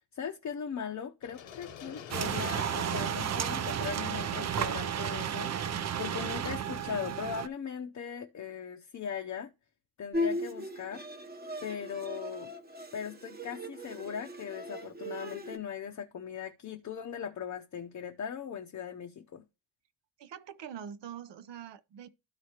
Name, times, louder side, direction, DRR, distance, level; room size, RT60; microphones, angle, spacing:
voice 1, 0.1-9.5 10.0-11.0 11.6-12.5 12.9-19.4, left 7 dB, 35° left, 0.7 m, -39 dB
sound 1, 1.2-5.1, left 8 dB, 70° left, 1.1 m, -48 dB
sound 2, 2.1-7.5, right 9 dB, 35° right, 0.4 m, -33 dB
Bowed string instrument, 10.1-15.6, left 1 dB, 20° right, 0.9 m, -38 dB
voice 2, 20.2-22.1, right 8 dB, 60° right, 0.7 m, -44 dB
12.5 x 4.9 x 2.9 m
wide cardioid pair, 145°, 47 cm